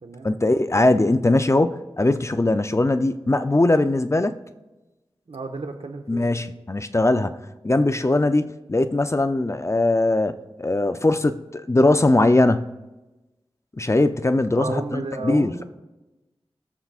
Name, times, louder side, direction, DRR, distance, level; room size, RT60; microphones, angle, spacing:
voice 1, 0.2-4.4 6.1-7.4 7.6-10.3 10.6-12.7 13.8-15.6, left 2 dB, 30° left, 10 dB, 0.5 m, -20 dB
voice 2, 5.3-6.3 14.5-15.6, right 3 dB, 75° right, 4 dB, 1.4 m, -32 dB
20.0 x 7.2 x 2.4 m, 1.1 s
wide cardioid pair, 55°, 10 cm